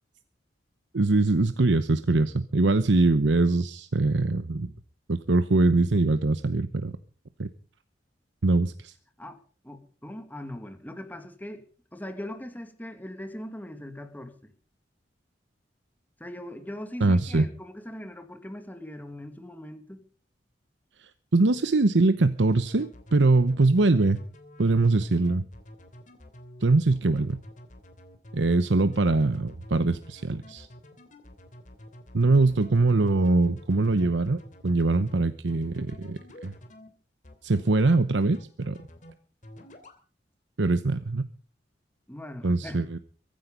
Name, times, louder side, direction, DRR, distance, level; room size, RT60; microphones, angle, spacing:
voice 1, 0.9-4.7 5.1-7.0 7.4-7.5 8.4-8.9 17.0-17.4 21.3-24.2 24.6-25.4 26.6-27.4 28.3-30.7 32.1-36.5 37.4-38.8 40.6-41.2 42.4-43.0, right 2 dB, 90° right, 0.8 m, -23 dB
voice 2, 9.2-11.6 11.9-14.5 16.2-20.0 42.1-42.8, left 1 dB, 10° left, 2.1 m, -40 dB
sound 1, 22.5-36.9 37.2-37.9 38.2-39.1 39.4-40.0, left 1 dB, 45° left, 3.0 m, -49 dB
23.0 x 10.5 x 5.2 m
head